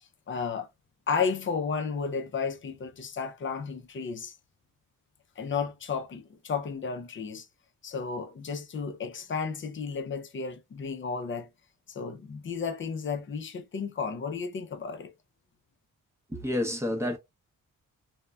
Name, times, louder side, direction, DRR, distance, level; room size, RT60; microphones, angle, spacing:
voice 1, 0.3-0.7 1.1-4.4 5.4-7.5 7.8-11.5 11.9-15.1, left 5 dB, 35° left, 0.4 m, -33 dB
voice 2, 16.3-17.2, left 1 dB, 10° right, 0.6 m, -29 dB
3.6 x 2.1 x 2.2 m
wide cardioid pair, 140°, 35 cm